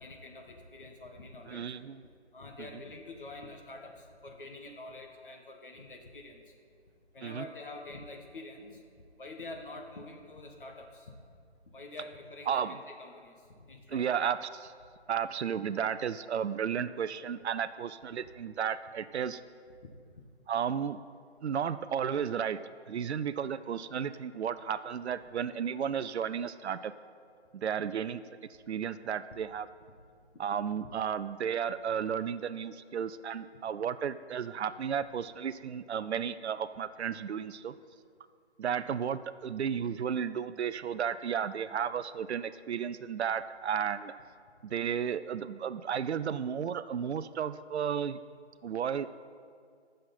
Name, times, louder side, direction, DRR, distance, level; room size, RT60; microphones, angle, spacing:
voice 1, 0.0-1.7 2.3-6.4 7.1-8.8 9.2-11.1 11.7-14.2, left 2 dB, 50° left, 2 dB, 1.5 m, -46 dB
voice 2, 1.5-2.0 7.2-7.4 12.5-12.8 13.9-14.5 15.1-19.4 20.5-21.0 21.4-22.6 22.9-26.9 27.5-28.2 28.7-29.7 30.4-37.7 38.6-44.1 44.6-48.2 48.6-49.1, right 8 dB, 70° right, 13 dB, 0.5 m, -33 dB
18.5 x 6.4 x 4.3 m, 2.2 s
figure-of-eight pair, 165°, 34 cm